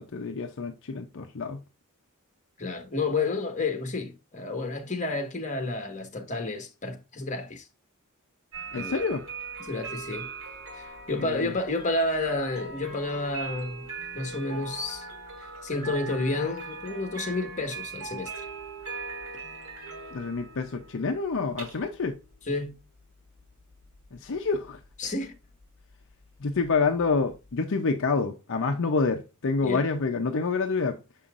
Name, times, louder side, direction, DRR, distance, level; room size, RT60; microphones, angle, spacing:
voice 1, 0.0-1.6 8.7-9.2 11.2-11.5 20.1-22.2 24.1-24.8 26.4-31.0, left 4 dB, 60° left, 0.6 m, -28 dB
voice 2, 2.6-7.7 8.7-9.0 9.6-10.3 10.7-13.9 14.1-15.1 15.6-18.3 22.5-22.7 25.0-25.3 29.6-29.8, left 2 dB, 35° left, 1.4 m, -30 dB
sound 1, 8.5-27.5, right 4 dB, 75° right, 2.8 m, -41 dB
6.9 x 5.6 x 2.5 m
head